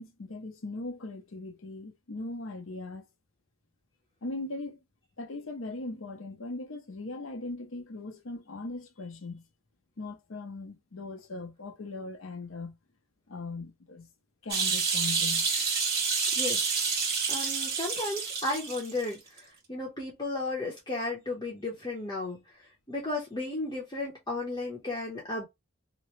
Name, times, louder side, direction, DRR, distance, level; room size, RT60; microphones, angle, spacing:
voice 1, 0.0-3.1 4.2-4.8 5.2-9.4 10.0-12.8 13.3-14.1 14.4-15.5, left 2 dB, 75° left, 0.7 m, -39 dB
sound 1, 14.5-19.0 19.4-19.5, right 5 dB, 50° right, 1.3 m, -28 dB
voice 2, 17.3-25.5, left 2 dB, 20° left, 0.8 m, -34 dB
2.9 x 2.0 x 3.1 m
head